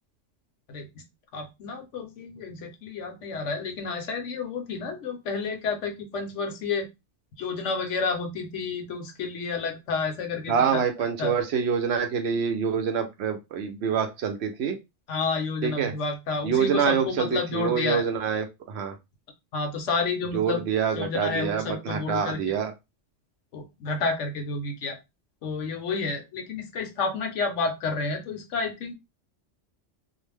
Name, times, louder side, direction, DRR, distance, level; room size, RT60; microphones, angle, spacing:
voice 1, 1.3-6.9 7.4-10.8 11.2-11.3 15.1-18.0 19.5-20.6 21.0-22.4 23.5-25.0 25.4-28.9, left 4 dB, 75° left, 5 dB, 1.0 m, -30 dB
voice 2, 10.5-14.8 15.6-15.9 16.4-18.9 20.3-22.7, right 7 dB, 65° right, 5 dB, 0.8 m, -26 dB
2.5 x 2.1 x 3.2 m, 0.23 s
omnidirectional pair, 1.3 m